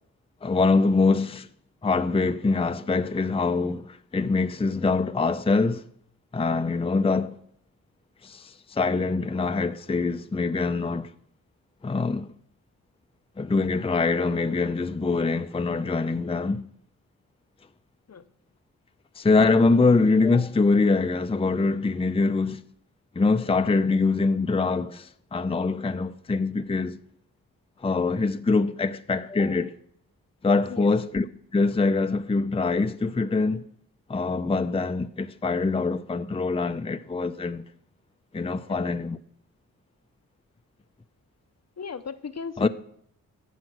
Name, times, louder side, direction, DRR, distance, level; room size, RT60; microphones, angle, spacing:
voice 1, 0.4-1.5 1.8-5.8 6.3-7.4 8.2-11.1 11.8-12.3 13.4-16.6 19.2-22.6 23.2-27.0 27.8-29.7 30.4-31.2 31.5-33.7 34.1-37.6 38.3-39.2 42.6-42.7, left 3 dB, 15° left, 0.6 m, -24 dB
voice 2, 41.8-42.7, left 6 dB, 50° left, 0.8 m, -36 dB
12.5 x 7.4 x 6.1 m
cardioid pair, 50°, 34 cm